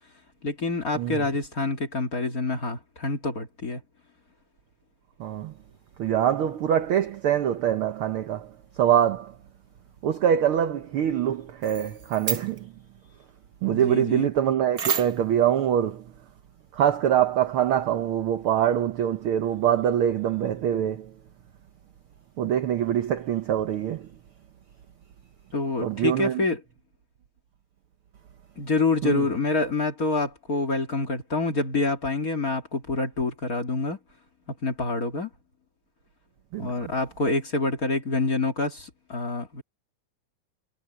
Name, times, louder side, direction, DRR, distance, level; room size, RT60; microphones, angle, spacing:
voice 1, 0.4-3.8 13.7-14.3 25.5-26.6 28.6-34.0 34.6-35.3 36.6-39.6, left 3 dB, 30° left, 2.1 m, -27 dB
voice 2, 5.2-5.5 6.0-9.4 10.0-12.7 13.6-16.1 16.7-21.1 22.4-24.1 25.8-26.4 29.0-29.2 36.5-36.7, right 10 dB, 75° right, 1.2 m, -24 dB
sound 1, 11.6-12.6 14.8-15.3, right 7 dB, 45° right, 1.2 m, -30 dB
omnidirectional pair, 3.6 m